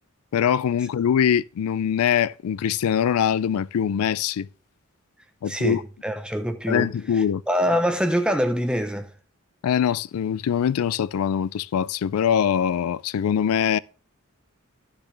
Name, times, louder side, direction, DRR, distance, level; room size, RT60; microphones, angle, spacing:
voice 1, 0.3-4.5 5.4-5.8 6.7-7.4 9.6-13.8, left 8 dB, 85° left, 0.3 m, -23 dB
voice 2, 5.5-9.1, equal, 5° right, 0.8 m, -25 dB
11.5 x 6.8 x 3.3 m
head